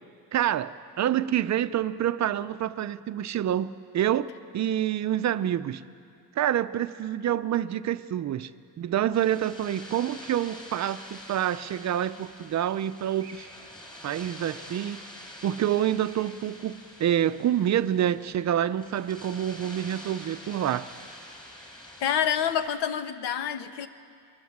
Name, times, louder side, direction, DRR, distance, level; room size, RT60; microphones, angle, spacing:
voice 1, 0.3-4.3 4.5-5.8 6.4-8.5 8.8-13.5 14.0-15.0 15.4-20.9, right 11 dB, 45° right, 13 dB, 0.5 m, -27 dB
sound 1, 9.1-22.7, left 1 dB, 10° left, 4.2 m, -46 dB
voice 2, 22.0-23.9, left 9 dB, 90° left, 10 dB, 1.2 m, -27 dB
24.5 x 21.5 x 7.3 m, 2.3 s
cardioid pair, 165°, 40 cm